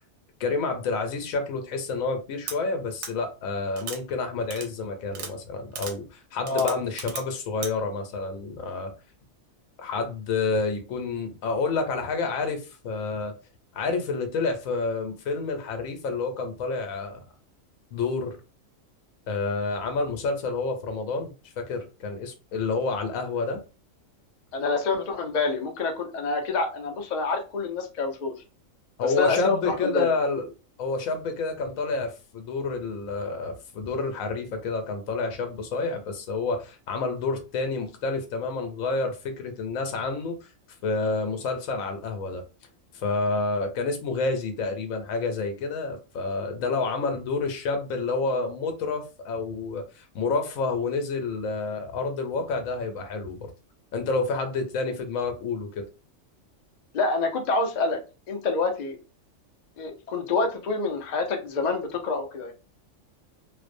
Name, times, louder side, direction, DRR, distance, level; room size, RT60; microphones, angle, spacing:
voice 1, 0.4-8.9 9.8-13.3 13.7-17.2 17.9-18.4 19.3-23.6 29.0-30.5 30.8-40.4 40.8-42.4 42.9-53.5 53.9-55.9, left 3 dB, 85° left, 1.0 m, -29 dB
sound 1, 2.5-2.6 3.0-3.1 3.8-4.0 4.5-4.7 5.1-5.3 5.8-5.9 6.5-7.2 7.6-7.7, right 6 dB, 90° right, 1.0 m, -35 dB
voice 2, 6.4-6.7 24.5-28.3 29.0-30.1 46.6-46.7 56.9-58.0 58.3-59.0 59.8-62.5, left 3 dB, 60° left, 0.4 m, -27 dB
2.5 x 2.0 x 2.5 m
omnidirectional pair, 1.4 m